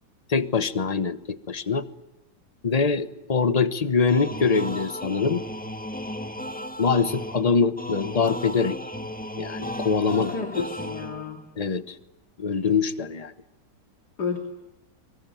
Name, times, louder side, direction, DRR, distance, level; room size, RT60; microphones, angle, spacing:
voice 1, 0.3-1.8 2.6-5.4 6.8-8.8 9.4-10.7 11.6-12.0 12.4-13.3, left 5 dB, 25° left, 13 dB, 1.1 m, -24 dB
sound 1, 4.1-11.5, left 1 dB, 5° left, 1.4 m, -35 dB
voice 2, 10.3-11.4 14.2-14.4, left 5 dB, 65° left, 4 dB, 3.4 m, -31 dB
25.0 x 24.5 x 9.3 m, 0.95 s
omnidirectional pair, 1.9 m